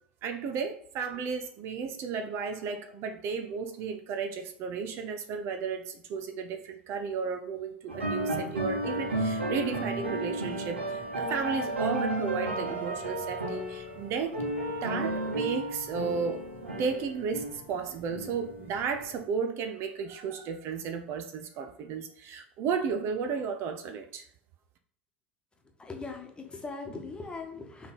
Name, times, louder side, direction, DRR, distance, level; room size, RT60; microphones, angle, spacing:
voice 1, 0.2-14.4 14.7-16.5 16.8-24.2, right 6 dB, 45° right, 0.6 m, -34 dB
sound 1, 7.9-19.2, right 1 dB, 80° right, 1.5 m, -33 dB
voice 2, 25.8-27.9, left 3 dB, 15° left, 1.4 m, -40 dB
5.9 x 3.5 x 5.4 m
figure-of-eight pair, 75°, 6 cm